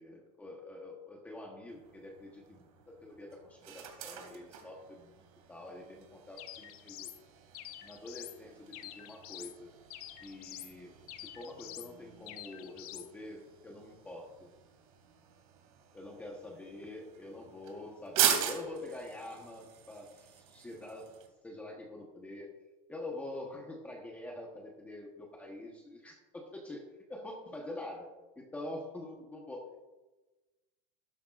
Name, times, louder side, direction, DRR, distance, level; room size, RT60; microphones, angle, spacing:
voice 1, 0.0-5.2 5.5-7.1 7.8-9.7 10.2-14.5 15.9-21.0 21.4-22.6 22.9-26.8 27.1-28.1 28.4-29.8, left 2 dB, 10° left, -1 dB, 1.1 m, -46 dB
sound 1, 1.7-21.3, right 9 dB, 85° right, 2.5 m, -41 dB
sound 2, 6.4-7.2 7.5-8.4 8.7-9.6 9.9-10.7 11.1-11.9 12.3-13.1, left 13 dB, 90° left, 0.9 m, -47 dB
13.0 x 12.0 x 2.5 m, 1.1 s
supercardioid pair, 165°, 18 cm